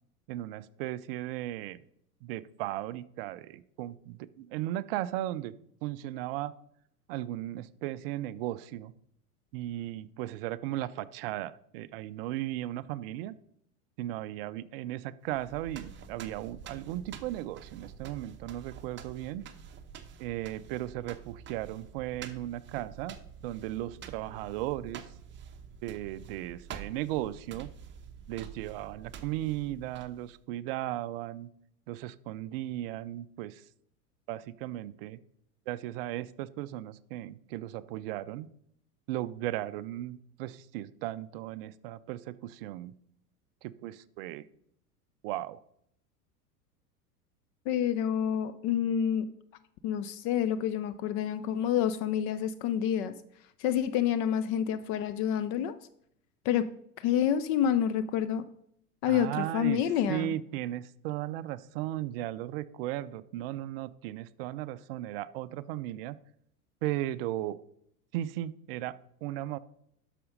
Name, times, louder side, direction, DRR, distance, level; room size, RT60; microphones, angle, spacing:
voice 1, 0.3-1.8 2.2-5.6 5.8-6.5 7.1-8.9 9.5-13.4 14.0-19.5 20.2-23.2 23.4-25.1 25.8-27.7 28.3-31.5 31.9-33.6 34.3-35.2 35.7-38.5 39.1-42.9 43.6-44.5 45.2-45.6 59.1-59.8 60.1-66.2 66.8-67.6 68.1-69.6, right 14 dB, 40° right, 16 dB, 0.5 m, -36 dB
sound 1, 15.3-30.4, right 7 dB, 25° right, 0.9 m, -48 dB
voice 2, 47.7-49.3 49.8-53.1 53.6-55.8 56.4-56.7 57.0-58.4 59.0-60.3, left 9 dB, 30° left, 11 dB, 0.4 m, -28 dB
12.5 x 5.1 x 5.1 m, 0.72 s
figure-of-eight pair, 85°, 46 cm